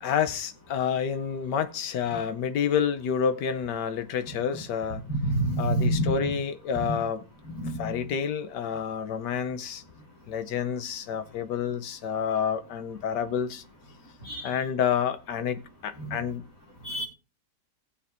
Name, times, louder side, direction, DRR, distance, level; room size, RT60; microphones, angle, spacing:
voice 1, 0.0-5.0 5.6-7.2 7.8-9.8 10.3-13.6 14.4-16.5, left 7 dB, 85° left, 1.5 m, -29 dB
voice 2, 5.1-6.4 6.7-7.0 7.5-8.0 14.2-14.6 16.0-16.2 16.8-17.0, right 1 dB, 55° left, 2.5 m, -28 dB
19.5 x 7.0 x 2.6 m
omnidirectional pair, 1.8 m